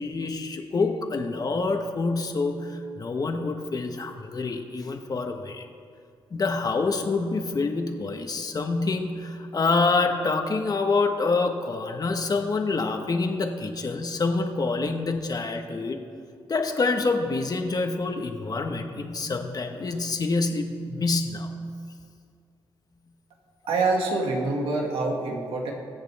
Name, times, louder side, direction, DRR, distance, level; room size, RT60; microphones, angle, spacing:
voice 1, 0.0-5.7 6.3-16.0 16.5-21.6, left 3 dB, 45° left, 4 dB, 1.3 m, -27 dB
voice 2, 23.7-25.7, right 3 dB, 85° right, 0 dB, 2.1 m, -26 dB
23.0 x 7.9 x 3.5 m, 2.3 s
cardioid pair, 75°, 9 cm